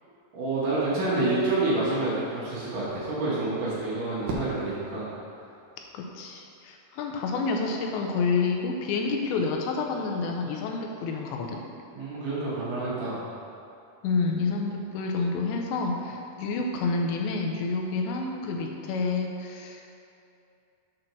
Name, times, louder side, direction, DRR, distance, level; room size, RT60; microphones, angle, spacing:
voice 1, 0.3-5.1 11.9-13.2, right 2 dB, 55° right, -8 dB, 2.8 m, -28 dB
Fireworks, 4.2-6.5, right 2 dB, 85° right, 1.7 m, -38 dB
voice 2, 5.9-11.6 14.0-19.8, left 4 dB, 85° left, 2 dB, 3.1 m, -29 dB
7.9 x 5.1 x 6.1 m, 2.6 s
omnidirectional pair, 5.0 m